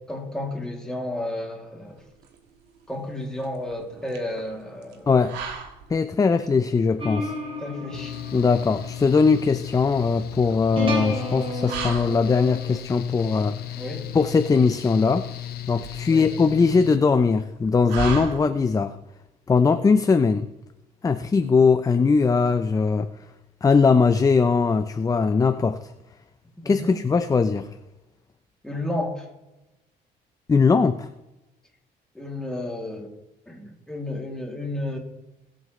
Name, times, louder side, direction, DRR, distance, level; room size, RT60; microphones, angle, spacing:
voice 1, 0.1-2.0 2.9-5.3 7.6-8.1 13.8-14.1 16.1-16.2 26.6-27.0 28.6-29.2 32.1-33.1 33.5-35.0, left 1 dB, 5° left, 2.7 m, -32 dB
sound 1, 1.9-18.9, right 6 dB, 90° right, 1.8 m, -39 dB
voice 2, 5.1-5.4 5.9-7.3 8.3-13.6 14.1-15.3 15.7-19.0 19.5-20.5 21.0-23.1 23.6-25.9 26.7-27.7 30.5-31.1, left 4 dB, 20° left, 0.6 m, -20 dB
sound 2, 7.0-12.8, left 1 dB, 30° right, 2.7 m, -33 dB
Mechanical fan, 7.9-17.0, left 12 dB, 65° left, 0.9 m, -36 dB
21.5 x 7.9 x 3.2 m
cardioid pair, 110°, 17 cm